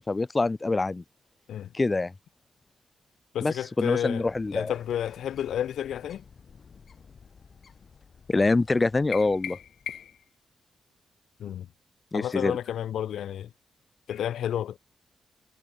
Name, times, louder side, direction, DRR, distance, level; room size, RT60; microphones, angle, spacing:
voice 1, 0.1-1.0 1.7-2.1 3.4-4.7 8.3-9.6 12.1-12.6, left 3 dB, 20° left, 0.5 m, -25 dB
voice 2, 3.3-6.2 11.4-11.7 12.1-13.5 14.1-14.8, left 10 dB, 85° left, 1.0 m, -31 dB
Bird, 4.3-10.2, left 6 dB, 40° left, 3.4 m, -54 dB
sound 1, 9.1-10.3, left 9 dB, 70° left, 2.8 m, -38 dB
wide cardioid pair, 145°, 0 cm